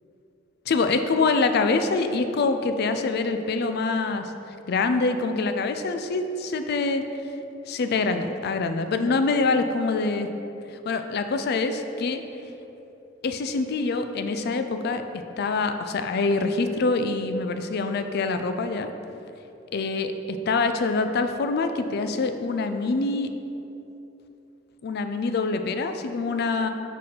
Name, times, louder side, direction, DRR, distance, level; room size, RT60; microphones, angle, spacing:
voice 1, 0.7-4.3 4.7-7.0 7.7-10.3 10.8-12.2 13.2-18.9 19.7-23.3 24.8-26.7, left 3 dB, 55° left, 8 dB, 0.4 m, -25 dB
5.0 x 4.6 x 5.3 m, 2.9 s
head